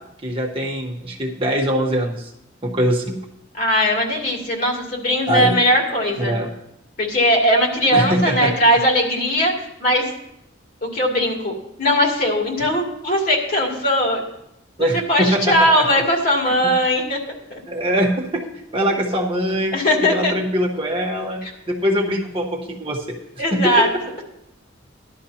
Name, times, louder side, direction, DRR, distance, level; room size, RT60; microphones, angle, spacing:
voice 1, 0.2-2.3 2.6-3.2 5.3-5.6 6.3-6.5 7.9-8.5 14.8-16.0 17.7-18.4 18.7-19.7 20.1-21.4 21.7-23.0 23.5-23.9, equal, 25° right, -1 dB, 1.0 m, -22 dB
voice 2, 3.6-6.3 7.0-10.1 10.8-14.2 14.8-17.2 17.5-17.6 19.7-20.3 21.4-21.5 23.4-24.2, equal, 45° left, -1 dB, 2.6 m, -19 dB
16.0 x 11.5 x 2.8 m, 0.81 s
head